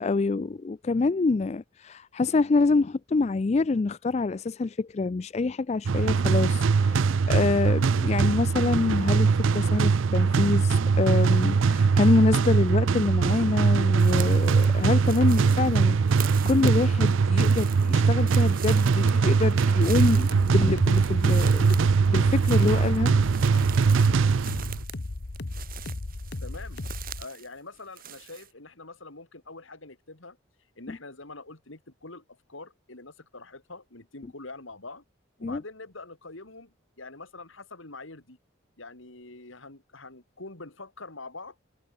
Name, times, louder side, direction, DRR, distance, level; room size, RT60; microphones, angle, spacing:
voice 1, 0.0-21.8 22.1-23.1 30.9-31.0 35.4-35.6, left 3 dB, 30° left, 0.3 m, -26 dB
sound 1, 5.9-24.8, right 5 dB, 70° right, 0.4 m, -22 dB
sound 2, 14.0-27.5 27.7-28.5, right 10 dB, 45° right, 3.3 m, -43 dB
sound 3, 20.6-27.2, left 2 dB, 50° left, 0.9 m, -36 dB
voice 2, 26.4-26.8 27.2-30.4 30.8-35.0 35.4-38.4 38.8-41.6, left 3 dB, 70° left, 2.9 m, -44 dB
head